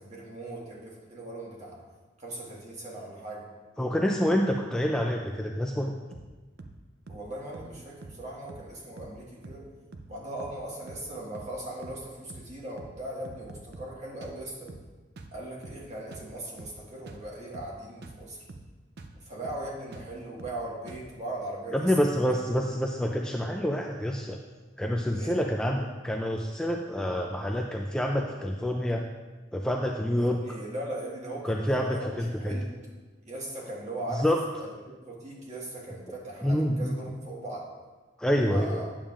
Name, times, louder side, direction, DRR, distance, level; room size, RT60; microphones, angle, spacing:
voice 1, 0.0-1.8 2.2-3.4 7.1-9.6 10.1-14.7 15.3-18.4 19.2-22.2 25.1-25.4 30.2-32.7 33.2-34.3 34.5-37.6 38.5-38.9, right 1 dB, 40° right, -4 dB, 1.6 m, -39 dB
voice 2, 3.8-5.9 21.7-24.4 24.8-29.0 29.5-30.4 31.4-32.6 34.2-34.4 36.4-36.9 38.2-38.9, equal, 5° left, 1 dB, 0.3 m, -27 dB
sound 1, 6.1-6.3 6.6-6.8 7.1-7.3 7.5-7.8 8.0-8.2 8.5-8.7 9.0-9.2 9.4-9.7 9.9-10.1 10.4-10.6 10.9-11.1 11.4-11.6 11.8-12.0 12.3-12.5 12.8-13.0 13.3-14.0 14.2-14.4 14.7-14.9 15.2-15.4 15.6-15.9 16.1-16.3 16.6-16.8 17.1-17.3 17.5-17.8 18.0-18.2 18.5-18.7 19.0-19.2 19.4-19.7 19.9-20.1 20.4-20.6 20.9-21.1, right 2 dB, 60° right, 0.5 m, -46 dB
8.7 x 7.1 x 2.5 m, 1.3 s
head